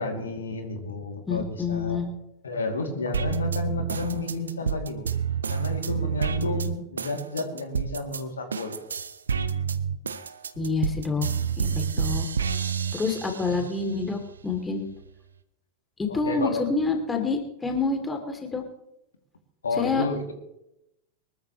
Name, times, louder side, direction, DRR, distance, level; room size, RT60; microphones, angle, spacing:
voice 1, 0.0-2.0 2.4-5.1 5.5-8.8 13.4-13.6 16.1-16.7 19.6-20.3, left 3 dB, 70° left, 5 dB, 2.6 m, -31 dB
voice 2, 1.3-2.1 10.6-11.3 11.6-12.3 12.9-14.8 16.0-18.6 19.8-20.1, left 4 dB, 15° left, 3 dB, 2.8 m, -27 dB
sound 1, 3.1-8.2 8.5-13.7 14.2-15.1, right 7 dB, 70° right, 0.9 m, -29 dB
24.0 x 14.0 x 3.1 m, 0.84 s
figure-of-eight pair, 90°, 0 cm